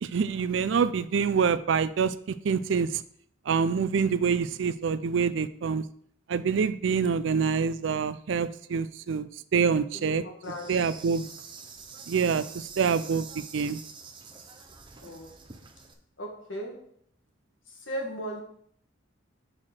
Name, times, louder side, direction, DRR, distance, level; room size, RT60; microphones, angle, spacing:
voice 1, 0.0-3.0 3.5-5.9 6.3-10.2 10.7-11.3 12.1-13.8, right 6 dB, 65° right, 15 dB, 0.4 m, -26 dB
voice 2, 9.9-10.7 15.0-15.3 16.2-16.9 17.9-18.4, equal, 70° left, 1 dB, 1.8 m, -37 dB
Insect, 10.4-15.9, right 5 dB, 25° right, 0.7 m, -46 dB
5.9 x 4.6 x 6.3 m, 0.63 s
head